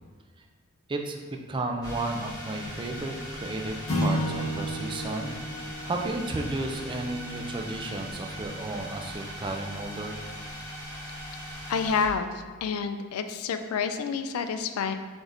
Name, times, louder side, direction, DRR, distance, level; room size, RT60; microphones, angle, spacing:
voice 1, 0.9-1.2 1.5-10.2, right 2 dB, 25° right, 3 dB, 0.4 m, -33 dB
sound 1, 1.8-12.1, equal, 20° left, 1.2 m, -39 dB
sound 2, 3.9-8.3, equal, 65° left, 1.4 m, -33 dB
voice 2, 11.7-14.9, left 5 dB, 80° left, 9 dB, 0.3 m, -29 dB
6.1 x 3.4 x 2.6 m, 1.5 s
head